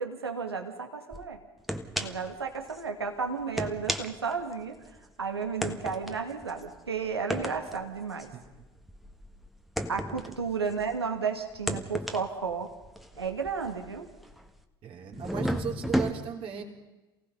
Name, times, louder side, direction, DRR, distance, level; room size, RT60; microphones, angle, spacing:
voice 1, 0.0-1.4 2.0-4.8 5.2-8.3 9.9-12.7 13.2-14.1, right 5 dB, 80° right, 5 dB, 2.0 m, -33 dB
sound 1, 1.1-1.2 1.7-2.3 2.7-2.8 3.4-5.0 5.6-11.1 11.5-14.6 15.1-16.1, equal, ahead, 1.5 m, -34 dB
voice 2, 14.8-16.6, right 7 dB, 45° right, 3 dB, 3.4 m, -37 dB
28.0 x 17.5 x 5.6 m, 1.1 s
figure-of-eight pair, 65°, 13 cm